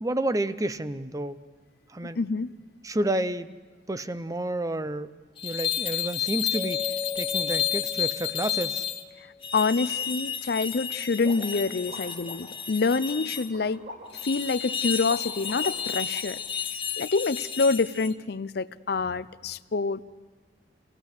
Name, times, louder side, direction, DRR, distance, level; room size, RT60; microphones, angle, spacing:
voice 1, 0.0-1.4 1.9-2.2 2.8-3.5 3.9-5.1 5.4-8.8, right 1 dB, 20° right, 13 dB, 0.6 m, -30 dB
voice 2, 2.1-2.5 9.2-9.3 9.5-13.8 14.2-16.4 17.0-20.0, left 4 dB, 60° left, 15 dB, 0.5 m, -27 dB
sound 1, 5.4-9.0 9.4-13.5 14.1-18.1, left 9 dB, 30° left, 1.3 m, -31 dB
Mallet percussion, 6.5-9.5, left 5 dB, 10° left, 1.7 m, -37 dB
sound 2, 11.1-16.2, left 1 dB, 55° right, 7.3 m, -44 dB
28.0 x 17.0 x 6.6 m, 1.4 s
head